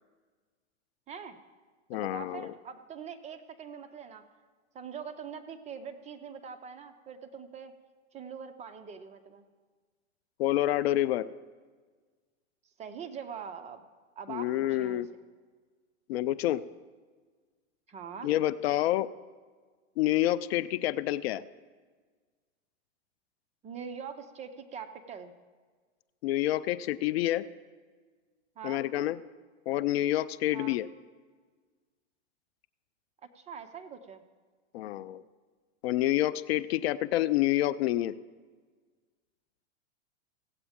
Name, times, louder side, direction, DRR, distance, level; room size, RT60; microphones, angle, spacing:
voice 1, 1.1-1.4 1.9-4.2 4.7-7.7 8.1-9.4 12.8-13.8 14.2-15.0 17.9-18.3 23.6-25.3 28.6-28.8 30.5-30.8 33.3-34.2, right 7 dB, 20° right, 7 dB, 0.6 m, -43 dB
voice 2, 1.9-2.5 10.4-11.3 14.3-15.1 16.1-16.6 18.2-19.1 20.0-21.4 26.2-27.4 28.6-29.2 29.7-30.9 34.7-35.2 35.8-38.1, left 14 dB, 60° left, 15 dB, 0.5 m, -28 dB
16.5 x 8.0 x 3.6 m, 1.5 s
hypercardioid pair, 125°, 35 cm